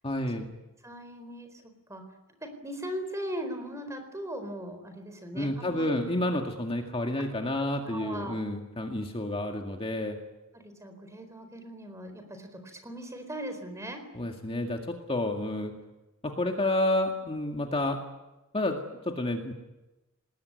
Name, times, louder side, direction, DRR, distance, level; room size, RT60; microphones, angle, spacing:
voice 1, 0.0-0.5 5.3-10.2 14.1-15.7 16.2-18.0 18.5-18.8 19.0-19.5, left 1 dB, 30° left, 3 dB, 2.1 m, -30 dB
voice 2, 0.8-1.6 1.9-2.0 2.4-6.2 7.6-8.4 10.6-14.0, equal, 15° right, 7 dB, 4.4 m, -39 dB
26.5 x 20.0 x 9.7 m, 1.0 s
head